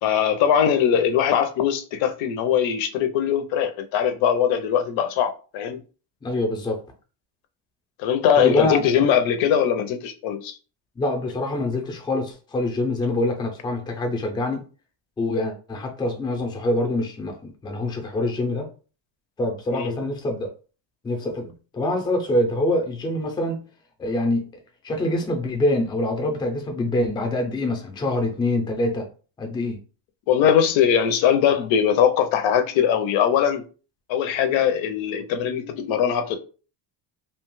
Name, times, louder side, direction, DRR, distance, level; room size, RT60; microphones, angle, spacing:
voice 1, 0.0-5.8 8.0-10.6 19.7-20.0 30.3-33.6 34.1-36.4, left 8 dB, 90° left, 0.6 m, -21 dB
voice 2, 6.2-6.8 8.4-8.8 11.0-14.6 15.2-18.7 19.4-20.5 21.0-23.6 24.0-24.5 24.8-29.1 29.4-29.8, left 1 dB, 10° left, 0.3 m, -25 dB
2.8 x 2.2 x 3.0 m
cardioid pair, 150°, 46 cm